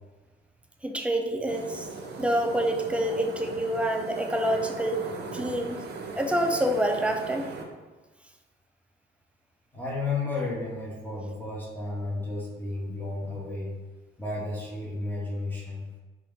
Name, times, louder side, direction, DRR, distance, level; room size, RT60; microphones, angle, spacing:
voice 1, 0.8-1.9 2.2-5.0 5.3-5.8 6.1-7.5, right 1 dB, 5° right, 4 dB, 0.3 m, -27 dB
sound 1, 1.5-7.6, right 3 dB, 60° right, 0.5 m, -38 dB
voice 2, 9.7-13.7 14.2-15.9, left 2 dB, 10° left, -5 dB, 0.7 m, -32 dB
2.8 x 2.3 x 3.4 m, 1.2 s
cardioid pair, 90°, 20 cm